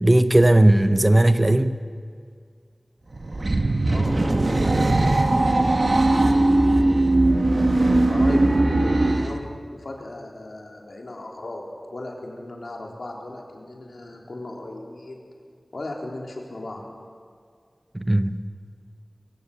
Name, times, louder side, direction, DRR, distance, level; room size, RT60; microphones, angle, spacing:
voice 1, 0.0-1.7 17.9-18.4, right 1 dB, 25° right, 10 dB, 0.8 m, -17 dB
sound 1, 3.1-9.4, right 2 dB, 60° right, 1.5 m, -19 dB
voice 2, 3.9-4.2 4.7-4.9 5.5-5.8 6.2-7.5 8.1-15.2 15.7-16.8, left 2 dB, 80° left, -1 dB, 3.4 m, -37 dB
22.5 x 16.5 x 7.1 m, 2.1 s
wide cardioid pair, 60°, 0 cm